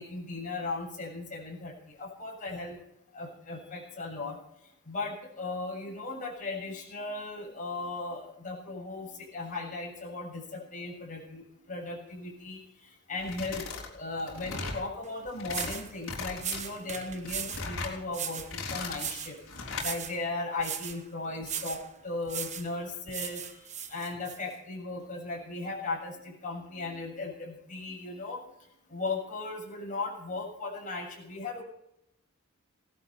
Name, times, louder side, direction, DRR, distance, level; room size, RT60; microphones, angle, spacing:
voice 1, 0.0-2.7 3.1-4.4 4.9-19.4 19.8-28.4 28.9-31.6, left 3 dB, 35° left, -2 dB, 7.3 m, -37 dB
sound 1, 13.2-13.9 14.2-14.8 15.3-15.7 16.0-16.6 17.1-18.0 18.4-19.1 19.5-19.9, left 4 dB, 65° left, 4.5 m, -37 dB
sound 2, 15.0-15.1 15.5-15.9 16.4-17.7 18.1-18.5 18.9-19.4 19.7-20.2 20.6-21.0 21.4-21.9 22.3-22.7 23.1-24.4, right 8 dB, 35° right, 1.2 m, -37 dB
18.5 x 12.5 x 5.7 m, 0.78 s
head